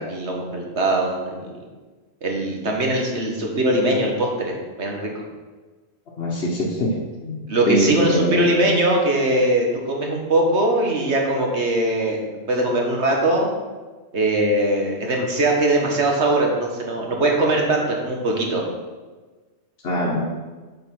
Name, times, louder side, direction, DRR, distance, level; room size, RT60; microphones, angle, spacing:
voice 1, 0.0-1.5 2.2-5.1 7.5-13.5 14.1-18.6, right 1 dB, 80° right, 0 dB, 1.9 m, -21 dB
voice 2, 6.2-8.5 19.8-20.2, equal, 70° left, -4 dB, 1.4 m, -23 dB
7.8 x 5.8 x 6.1 m, 1.3 s
omnidirectional pair, 1.1 m